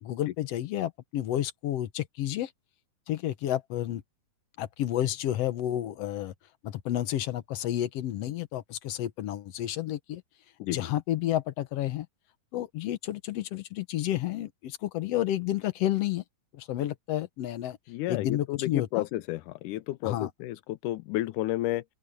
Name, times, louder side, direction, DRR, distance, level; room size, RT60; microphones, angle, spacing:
voice 1, 0.0-2.5 3.1-4.0 4.6-6.3 6.6-10.2 10.7-12.1 12.5-16.2 16.5-17.8 18.1-19.0 20.0-20.3, left 12 dB, 65° left, 1.7 m, -30 dB
voice 2, 17.9-21.8, left 16 dB, 85° left, 2.2 m, -31 dB
open air
omnidirectional pair, 3.6 m